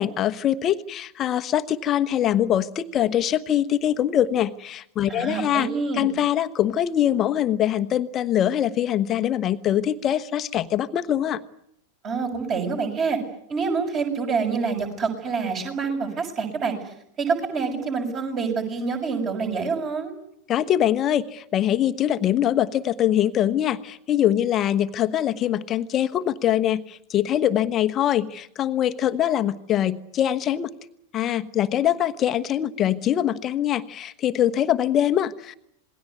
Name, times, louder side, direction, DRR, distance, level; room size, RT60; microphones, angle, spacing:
voice 1, 0.0-5.7 5.9-11.4 20.5-30.7 31.1-35.5, left 11 dB, 30° left, 10 dB, 1.1 m, -23 dB
voice 2, 5.1-6.1 12.0-13.2 13.5-20.1, right 5 dB, 30° right, 4 dB, 6.8 m, -27 dB
27.5 x 20.5 x 9.7 m, 0.75 s
figure-of-eight pair, 90°, 0 cm